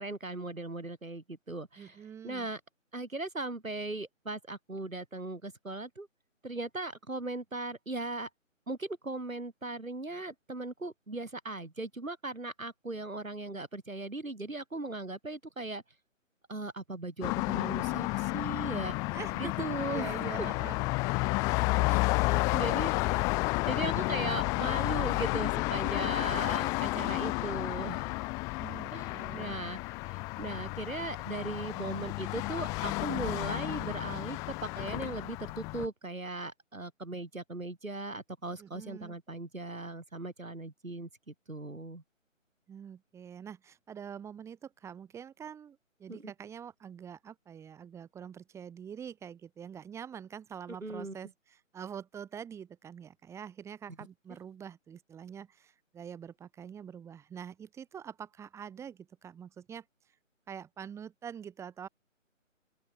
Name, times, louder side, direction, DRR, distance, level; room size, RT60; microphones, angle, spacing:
voice 1, 0.0-2.0 2.2-2.6 2.9-6.1 6.4-8.3 8.7-15.8 16.5-19.0 19.3-20.5 22.0-28.1 28.9-42.0 46.1-46.3 50.8-51.2, right 2 dB, 90° right, 6.9 m, -38 dB
voice 2, 1.8-2.5 19.1-20.8 21.8-22.0 28.6-29.5 38.6-39.2 42.7-59.8 60.5-61.9, right 8 dB, 5° right, 3.3 m, -45 dB
sound 1, 17.2-35.9, left 26 dB, 10° left, 1.1 m, -31 dB
open air
figure-of-eight pair, 150°, 39 cm